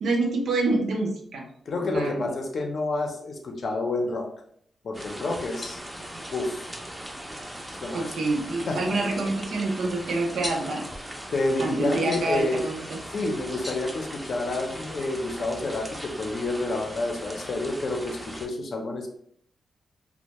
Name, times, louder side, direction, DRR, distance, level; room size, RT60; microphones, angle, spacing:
voice 1, 0.0-1.5 1.8-2.3 7.9-10.9 11.6-13.0, right 2 dB, 80° right, 1 dB, 0.5 m, -27 dB
voice 2, 1.7-4.3 4.8-5.8 6.3-6.6 7.8-8.1 8.7-9.0 11.3-12.6 13.1-19.1, left 2 dB, 60° left, 2 dB, 0.5 m, -29 dB
sound 1, 4.9-18.5, right 1 dB, 10° right, 0.5 m, -39 dB
sound 2, 5.3-14.7, left 2 dB, 30° left, 0.8 m, -45 dB
2.1 x 2.1 x 2.9 m, 0.65 s
cardioid pair, 75°, 0 cm